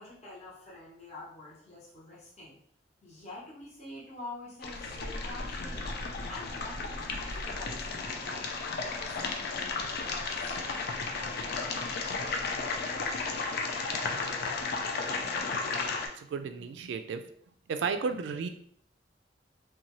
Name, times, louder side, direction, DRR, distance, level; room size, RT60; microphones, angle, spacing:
voice 1, 0.0-2.6 3.0-12.0, left 2 dB, 35° left, -7 dB, 0.8 m, -47 dB
sound 1, 4.6-16.1, left 4 dB, 55° left, 0.4 m, -34 dB
voice 2, 16.2-17.2 17.7-18.5, right 5 dB, 75° right, 8 dB, 0.3 m, -33 dB
2.7 x 2.2 x 2.9 m, 0.64 s
head